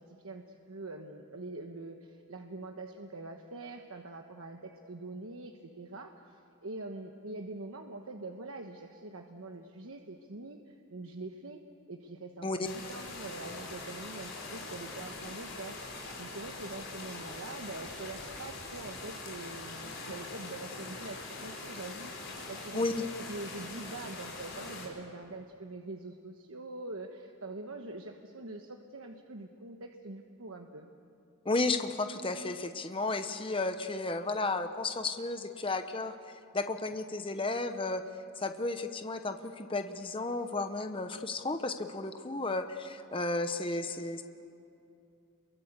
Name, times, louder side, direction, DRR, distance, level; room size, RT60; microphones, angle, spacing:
voice 1, 0.0-11.6 11.9-15.8 16.2-30.9, right 2 dB, 80° right, 3 dB, 1.3 m, -44 dB
sound 1, 12.6-24.9, left 3 dB, 55° left, 5.4 m, -43 dB
voice 2, 22.7-23.0 31.4-36.1 36.5-38.0 38.4-44.2, left 3 dB, 25° left, 7 dB, 0.9 m, -33 dB
27.5 x 23.0 x 8.2 m, 2.6 s
head